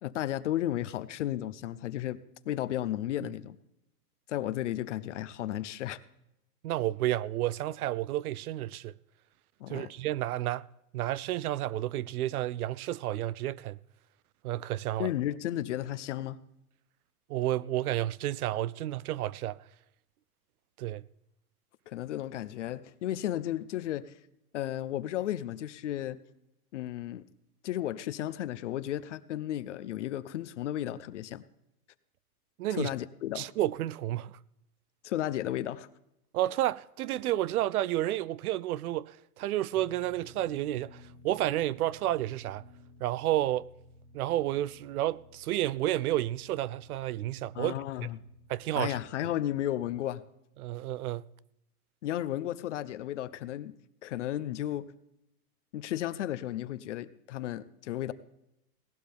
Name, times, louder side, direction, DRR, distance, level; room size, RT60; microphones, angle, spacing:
voice 1, 0.0-3.6 4.3-6.0 9.6-9.9 15.0-16.4 21.9-24.1 24.5-26.2 26.7-27.3 27.6-31.4 32.7-33.5 35.0-35.9 47.5-48.2 48.7-50.2 52.0-53.7 54.0-54.9 55.7-58.1, left 12 dB, 55° left, 0.7 m, -34 dB
voice 2, 6.6-8.9 9.7-10.7 10.9-13.8 14.4-15.1 17.3-19.6 20.8-21.0 32.6-32.9 33.4-34.3 36.3-42.6 43.0-43.7 44.1-47.7 48.5-49.0 50.6-51.2, right 14 dB, 70° right, 0.6 m, -31 dB
sound 1, 39.7-49.8, left 2 dB, 20° left, 1.6 m, -56 dB
18.0 x 12.0 x 3.5 m
supercardioid pair, 175°, 46 cm